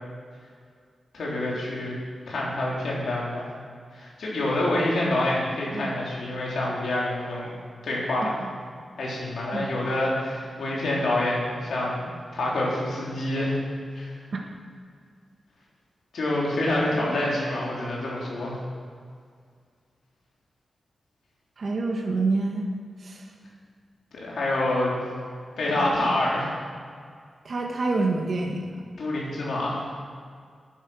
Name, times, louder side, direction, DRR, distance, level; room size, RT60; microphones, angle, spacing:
voice 1, 1.1-1.9 2.3-3.5 3.9-7.5 7.8-8.4 9.0-13.6 13.9-14.1 16.1-18.6 24.1-25.0 25.6-26.5 29.0-29.9, left 1 dB, 80° left, -5 dB, 3.3 m, -27 dB
voice 2, 21.6-22.6 23.0-23.3 27.4-28.8, right 3 dB, 55° right, 0 dB, 1.3 m, -27 dB
11.0 x 10.0 x 6.3 m, 2.1 s
wide cardioid pair, 135°, 0 cm